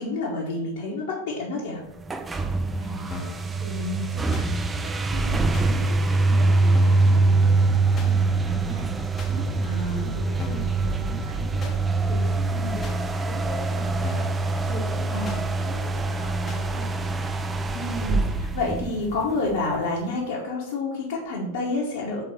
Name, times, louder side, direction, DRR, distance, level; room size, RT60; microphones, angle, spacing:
voice 1, 0.0-1.8 9.6-10.1 12.5-12.8 15.1-15.4 17.7-22.2, left 2 dB, 55° left, -5 dB, 1.2 m, -29 dB
sound 1, 2.0-19.5, right 3 dB, 15° right, 0.4 m, -24 dB
voice 2, 2.8-4.5 4.8-16.9, left 1 dB, 60° right, -4 dB, 1.8 m, -40 dB
sound 2, 3.1-3.4 4.3-4.5 5.5-5.7 6.7-7.1 8.0-8.1 9.2-9.3 10.4-10.7 11.6-11.8 12.8-13.0 14.0-14.4 15.2-15.4 16.5-16.6, left 5 dB, 25° left, 0.8 m, -37 dB
4.7 x 3.7 x 5.4 m, 0.89 s
figure-of-eight pair, 90°, 0 cm